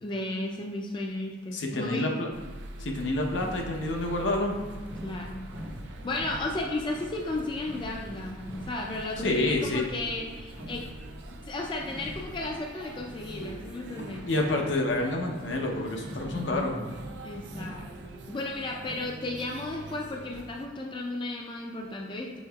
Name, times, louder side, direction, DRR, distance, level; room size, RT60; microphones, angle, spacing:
voice 1, 0.0-2.1 5.0-5.4 6.0-10.8 11.5-14.3 16.2-16.9 17.2-17.9 18.3-22.4, left 2 dB, 25° left, 0 dB, 0.3 m, -34 dB
voice 2, 1.5-2.3 2.8-4.6 9.2-9.9 14.3-16.8, left 2 dB, 75° left, 1 dB, 0.7 m, -28 dB
sound 1, 2.3-20.7, right 1 dB, 70° right, 0.4 m, -45 dB
sound 2, 3.3-19.0, equal, 10° right, 0.6 m, -45 dB
6.3 x 3.6 x 2.3 m, 1.4 s
head